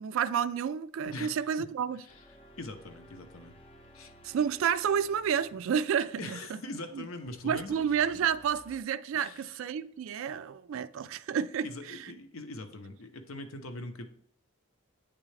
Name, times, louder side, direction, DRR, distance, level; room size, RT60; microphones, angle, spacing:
voice 1, 0.0-2.0 4.2-6.6 6.9-7.1 7.4-12.0, right 8 dB, 65° right, 0.3 m, -30 dB
voice 2, 1.0-1.7 2.0-2.2 2.6-3.5 3.9-4.1 6.2-7.9 9.1-9.5 11.6-14.1, left 2 dB, 75° left, 0.8 m, -42 dB
sound 1, 2.1-8.8, equal, 25° left, 0.6 m, -56 dB
8.8 x 3.7 x 3.2 m
head